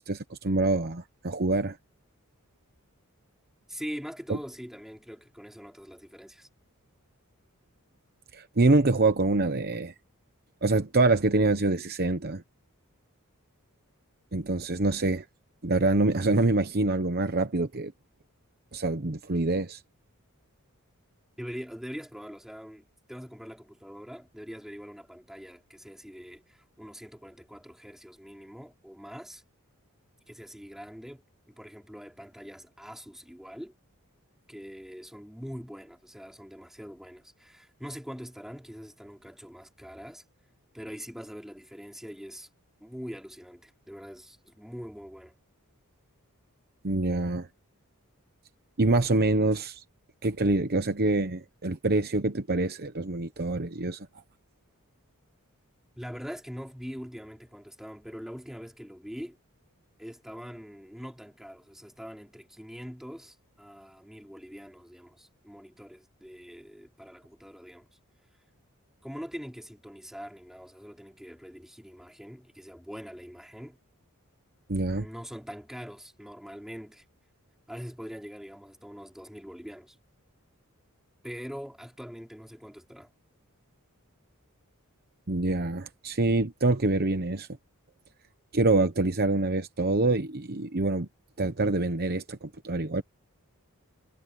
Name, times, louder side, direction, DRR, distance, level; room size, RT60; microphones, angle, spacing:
voice 1, 0.0-1.8 8.3-9.9 10.6-12.4 14.3-15.2 15.6-17.9 18.7-19.8 46.8-47.5 48.8-49.8 50.2-54.1 74.7-75.1 85.3-87.5 88.5-91.1 91.4-93.0, right 2 dB, 45° right, 1.0 m, -25 dB
voice 2, 3.7-6.5 21.4-29.4 30.3-31.2 31.5-33.7 34.5-40.2 40.7-42.5 42.8-45.3 55.9-59.4 60.0-67.9 69.0-73.8 74.9-77.0 77.7-79.9 81.2-83.1, equal, ahead, 4.9 m, -43 dB
head